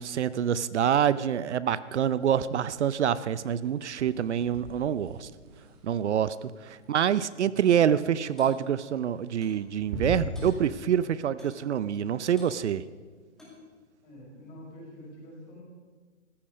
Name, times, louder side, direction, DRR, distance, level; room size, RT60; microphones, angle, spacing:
voice 1, 0.0-5.3 5.8-12.8, right 9 dB, 65° right, 17 dB, 0.6 m, -26 dB
sound 1, 2.2-2.9 3.2-7.3 8.9-9.5 9.8-10.6, right 2 dB, 30° right, 2.5 m, -39 dB
Clock, 8.4-8.6 9.4-9.6 10.3-10.6 11.4-11.6 12.4-12.6 13.4-13.6, left 2 dB, ahead, 2.4 m, -49 dB
voice 2, 14.0-15.6, left 1 dB, 35° left, -3 dB, 5.8 m, -47 dB
14.5 x 13.5 x 5.4 m, 1.4 s
hypercardioid pair, 160°, 37 cm